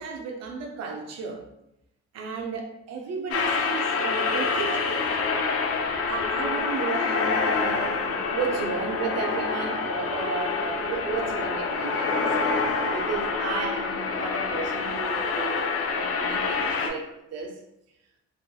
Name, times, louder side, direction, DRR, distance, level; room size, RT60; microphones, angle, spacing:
voice 1, 0.0-1.4 2.1-5.2 5.7-5.8 6.1-17.6, right 5 dB, 60° right, 3 dB, 0.6 m, -34 dB
sound 1, 3.3-16.9, left 4 dB, 50° left, 0.4 m, -27 dB
2.5 x 2.4 x 2.3 m, 0.84 s
cardioid pair, 90°, 30 cm